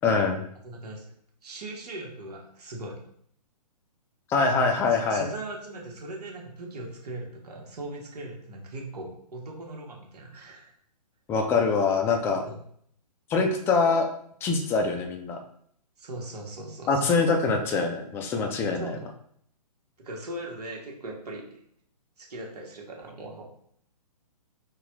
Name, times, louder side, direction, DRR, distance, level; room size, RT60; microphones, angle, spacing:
voice 1, 0.0-0.4 4.3-5.3 11.3-12.4 13.3-14.1 14.4-15.4 16.9-19.0, left 4 dB, 10° left, 3 dB, 0.4 m, -24 dB
voice 2, 0.6-1.0 1.4-3.0 4.9-10.7 12.4-12.6 16.0-17.2 18.8-19.0 20.0-21.5 22.2-23.4, right 2 dB, 70° right, -1 dB, 1.5 m, -39 dB
3.9 x 2.4 x 4.6 m, 0.65 s
hypercardioid pair, 135°, 21 cm